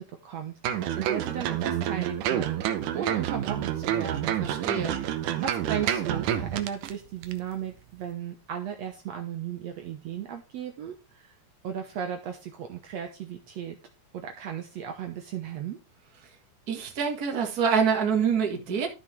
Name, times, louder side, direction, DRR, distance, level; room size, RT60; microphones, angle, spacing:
voice 1, 0.0-2.6 2.9-4.4 5.0-11.2 11.6-13.8 14.1-15.8, right 9 dB, 65° right, 2.0 m, -35 dB
sound 1, 0.6-6.9 7.2-7.4, right 10 dB, 90° right, 2.4 m, -28 dB
voice 2, 4.4-5.0 16.7-18.9, right 6 dB, 35° right, 1.8 m, -26 dB
12.5 x 6.1 x 3.4 m
omnidirectional pair, 3.5 m